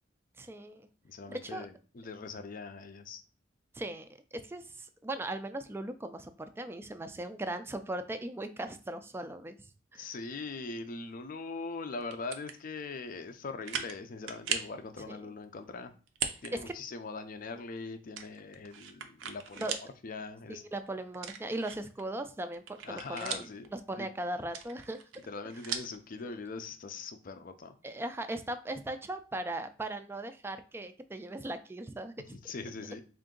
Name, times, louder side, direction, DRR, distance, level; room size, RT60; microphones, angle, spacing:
voice 1, 0.4-0.9 1.3-1.7 3.7-9.6 9.9-10.1 15.1-15.2 16.5-16.7 19.6-19.8 20.5-25.0 26.2-26.4 27.8-32.4, right 1 dB, 10° right, 9 dB, 0.3 m, -38 dB
voice 2, 1.0-3.2 9.9-15.9 16.4-20.6 22.8-23.7 24.0-24.1 25.3-27.7 32.4-33.0, left 3 dB, 45° left, 9 dB, 0.4 m, -41 dB
sound 1, 12.0-12.6 13.1-13.2 13.7-14.0 14.3-14.8 16.1-16.5 16.9-17.0 18.2-19.9 20.3-20.4 21.1-22.0 22.4-23.7 24.4-26.0, right 7 dB, 80° right, 0.5 m, -38 dB
3.7 x 2.5 x 3.7 m, 0.36 s
head